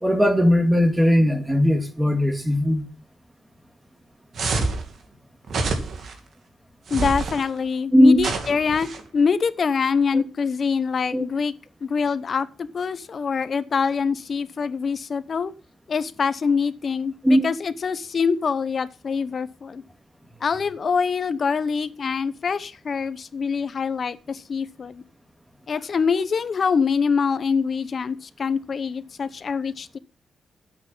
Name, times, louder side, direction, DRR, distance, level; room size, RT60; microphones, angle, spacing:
voice 1, 0.0-2.8 7.9-8.2 10.1-10.2 11.1-11.2 17.2-17.4, equal, 10° right, 2.0 m, -18 dB
sound 1, 4.4-4.9 5.5-6.1 6.9-7.4 8.2-9.0, right 3 dB, 70° right, 2.4 m, -27 dB
voice 2, 6.9-11.5 11.8-12.5 12.7-15.5 15.9-19.8 20.4-25.0 25.7-30.0, left 5 dB, 50° left, 0.9 m, -24 dB
13.0 x 8.1 x 5.5 m
wide cardioid pair, 125°, 0 cm